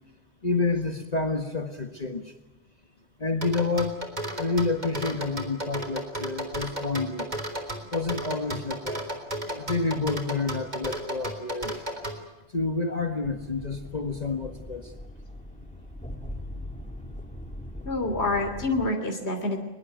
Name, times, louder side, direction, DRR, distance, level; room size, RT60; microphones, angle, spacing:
voice 1, 0.4-2.2 3.2-4.0 4.4-7.3 7.9-9.0 9.5-11.8 12.5-14.9, left 3 dB, 35° left, 5 dB, 1.7 m, -29 dB
sound 1, 3.4-12.2, right 1 dB, 40° right, 3.6 m, -33 dB
sound 2, 13.2-18.9, left 1 dB, 5° left, 2.1 m, -40 dB
voice 2, 17.8-19.6, left 2 dB, 65° left, 4 dB, 3.3 m, -27 dB
23.0 x 22.0 x 9.3 m, 1.1 s
omnidirectional pair, 1.2 m